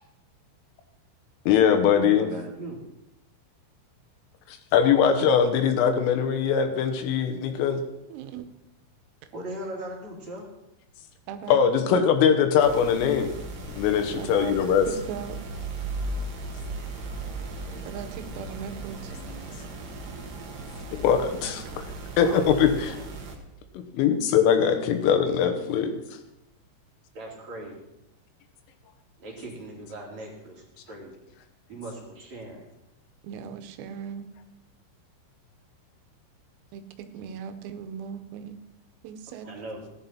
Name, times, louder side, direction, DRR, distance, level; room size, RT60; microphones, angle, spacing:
voice 1, 1.5-2.3 4.5-7.8 11.5-13.3 13.8-14.9 20.9-21.8 22.2-23.0 23.9-26.0, left 7 dB, 80° left, 6 dB, 3.6 m, -21 dB
voice 2, 2.0-2.8 9.3-10.5 22.2-23.0 27.1-27.8 29.2-31.1 31.7-32.6 39.3-39.8, right 1 dB, 45° right, -2 dB, 3.0 m, -39 dB
voice 3, 8.1-8.5 11.3-12.0 14.2-14.6 14.9-15.4 17.8-19.1 21.7-21.8 33.2-34.3 36.7-38.6 39.0-39.5, right 8 dB, 90° right, 9 dB, 3.6 m, -38 dB
sound 1, 12.6-23.4, right 2 dB, 65° right, 1.7 m, -37 dB
15.5 x 11.0 x 4.3 m, 0.87 s
omnidirectional pair, 5.8 m